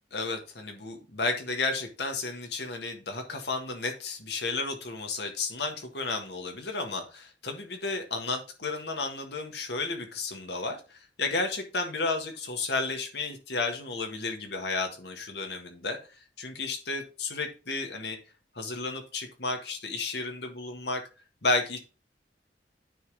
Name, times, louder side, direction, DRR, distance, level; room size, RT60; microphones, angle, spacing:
voice 1, 0.1-16.0 16.4-18.2 18.5-21.0 21.4-21.8, left 3 dB, 70° left, 4 dB, 1.6 m, -32 dB
9.4 x 3.7 x 4.8 m, 0.32 s
head